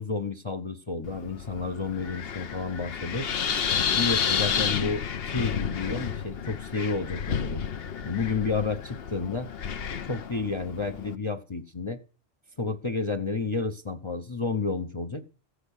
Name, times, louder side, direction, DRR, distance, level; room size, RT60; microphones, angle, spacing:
voice 1, 0.0-3.3 3.9-7.6 8.0-9.5 10.1-12.0 12.6-15.2, left 4 dB, 30° left, 0.7 m, -31 dB
Wind, 1.0-11.1, left 7 dB, 55° left, 1.0 m, -31 dB
15.0 x 8.1 x 6.5 m
omnidirectional pair, 1.2 m